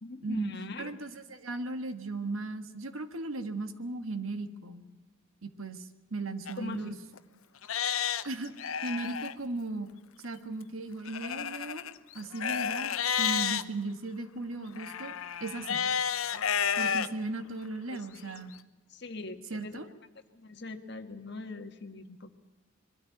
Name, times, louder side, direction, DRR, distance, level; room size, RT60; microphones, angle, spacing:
voice 1, 0.0-0.9 6.6-6.9 17.9-18.4 18.9-19.8 20.3-22.3, left 3 dB, 50° left, 7 dB, 1.6 m, -41 dB
voice 2, 0.8-4.9 5.4-7.0 8.3-8.5 8.8-9.9 10.2-11.9 12.1-15.8 16.8-18.5 19.5-19.9, right 2 dB, 80° right, 9 dB, 1.6 m, -37 dB
Livestock farm animals working animals, 6.5-6.6 7.1-7.2 7.6-9.3 11.0-13.6 14.8-17.1 17.6-17.7 18.3-18.4, left 8 dB, 80° left, 0.8 m, -31 dB
22.0 x 13.5 x 9.2 m, 1.2 s
head